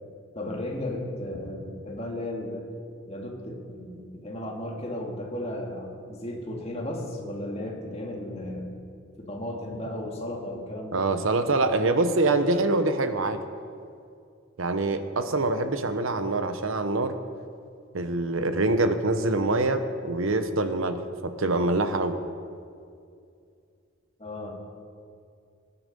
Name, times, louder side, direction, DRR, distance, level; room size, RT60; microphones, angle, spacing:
voice 1, 0.3-2.7 3.1-8.7 9.2-11.0 24.2-24.6, left 1 dB, 30° left, 0 dB, 2.1 m, -35 dB
voice 2, 10.9-13.4 14.6-17.2 17.9-22.2, right 2 dB, 75° right, 9 dB, 0.9 m, -25 dB
19.0 x 9.9 x 5.3 m, 2.4 s
head